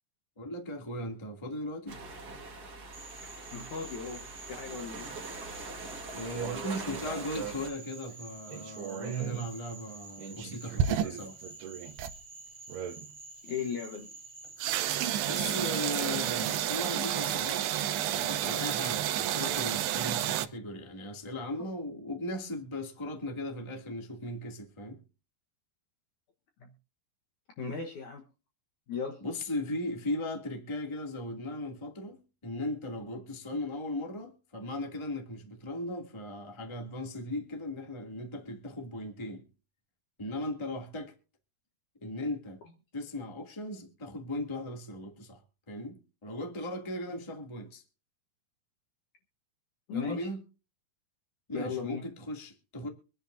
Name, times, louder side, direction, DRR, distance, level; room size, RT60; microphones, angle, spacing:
voice 1, 0.4-2.0 6.1-11.4 15.2-17.6 18.1-25.0 29.2-39.4 40.2-41.1 42.0-42.6 42.9-45.4 45.7-47.8 49.9-50.4 51.5-52.9, left 1 dB, 10° left, 1.6 m, -37 dB
sound 1, 1.9-7.7, right 3 dB, 50° right, 1.1 m, -43 dB
Frog, 2.9-16.8, right 3 dB, 30° right, 1.9 m, -49 dB
voice 2, 3.2-5.1 13.4-14.1 27.6-28.3 28.9-29.2 49.9-50.3 51.5-52.1, left 6 dB, 60° left, 2.2 m, -37 dB
sound 2, 6.4-7.7 8.5-9.5 10.2-12.2 12.7-13.1 14.6-20.5, right 11 dB, 80° right, 2.8 m, -32 dB
24.5 x 10.5 x 2.7 m
omnidirectional pair, 4.8 m